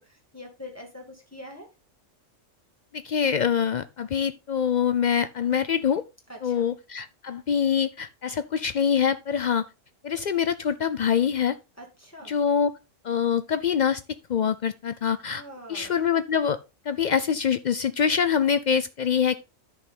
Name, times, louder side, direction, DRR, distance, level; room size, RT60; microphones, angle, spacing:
voice 1, 0.0-1.7 6.3-6.7 11.8-12.3 15.3-16.0, left 1 dB, 10° left, 2.0 m, -44 dB
voice 2, 2.9-6.0 6.4-9.6 10.0-11.6 12.3-12.7 13.0-14.0 14.3-15.4 15.7-16.6 16.9-19.4, left 7 dB, 75° left, 0.4 m, -24 dB
10.0 x 5.8 x 3.8 m
omnidirectional pair, 1.3 m